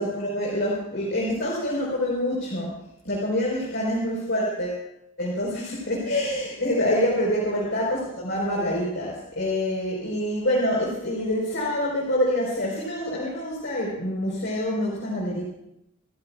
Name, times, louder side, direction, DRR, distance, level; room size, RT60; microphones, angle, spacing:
voice 1, 0.0-2.7 3.0-4.8 5.2-15.4, left 1 dB, 55° left, -5 dB, 4.4 m, -26 dB
28.5 x 14.5 x 2.4 m, 0.80 s
head